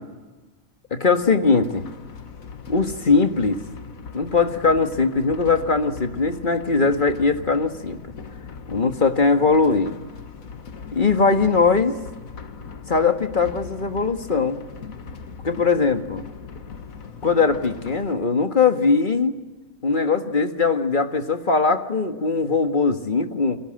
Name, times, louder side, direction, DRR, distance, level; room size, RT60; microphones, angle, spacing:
voice 1, 0.9-1.8 2.7-3.6 4.1-8.1 8.7-9.9 10.9-12.0 12.9-14.6 15.4-16.2 17.2-19.4 19.8-23.6, left 4 dB, 35° left, 7 dB, 1.8 m, -20 dB
sound 1, 1.1-18.2, left 5 dB, 85° left, 1.9 m, -39 dB
29.0 x 24.0 x 7.8 m, 1.2 s
omnidirectional pair, 1.4 m